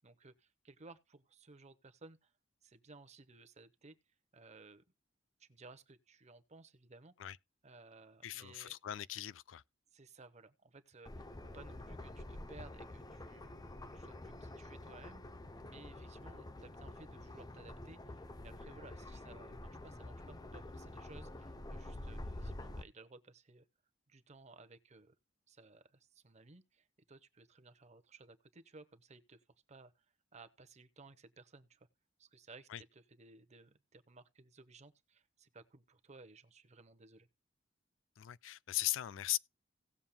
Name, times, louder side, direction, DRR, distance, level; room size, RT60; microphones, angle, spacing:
voice 1, 0.0-2.3 2.6-3.9 4.3-4.8 5.4-7.1 7.6-8.7 9.9-13.6 13.9-15.2 15.6-23.6 24.1-25.1 25.5-30.1 30.3-31.9 32.2-37.3, right 3 dB, 35° right, 0.9 m, -58 dB
voice 2, 8.2-9.6 32.7-32.8 38.2-39.4, left 14 dB, 80° left, 0.4 m, -38 dB
sound 1, 11.0-22.8, left 1 dB, 20° left, 0.6 m, -48 dB
17.5 x 7.2 x 2.2 m
head